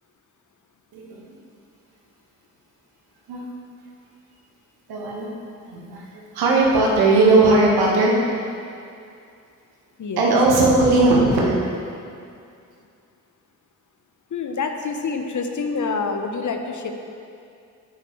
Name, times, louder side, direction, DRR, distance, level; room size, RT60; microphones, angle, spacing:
voice 1, 0.9-1.2 3.3-3.4 4.9-5.3 5.7-8.2 10.2-11.6, right 2 dB, 75° right, -3 dB, 1.7 m, -18 dB
voice 2, 10.0-10.4 14.3-16.9, left 4 dB, 50° left, 5 dB, 1.0 m, -27 dB
10.0 x 9.2 x 3.3 m, 2.5 s
hypercardioid pair, 45°, 37 cm